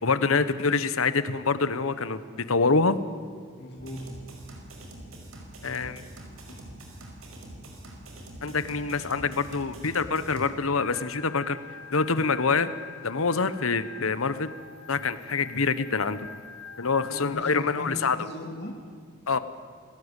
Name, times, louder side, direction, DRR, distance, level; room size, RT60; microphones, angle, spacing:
voice 1, 0.0-3.0 5.6-6.0 8.4-11.6 11.9-12.7 13.0-14.5 14.9-16.3 16.8-18.2 19.3-19.4, left 4 dB, 85° left, 14 dB, 1.1 m, -26 dB
voice 2, 3.6-4.2 6.5-6.7 17.0-18.8, left 1 dB, 55° left, 1 dB, 2.2 m, -38 dB
sound 1, 3.8-10.5, right 1 dB, 85° right, 5.1 m, -44 dB
Organ, 10.8-17.2, left 5 dB, 70° left, 1.6 m, -45 dB
27.0 x 18.5 x 8.3 m, 2.2 s
head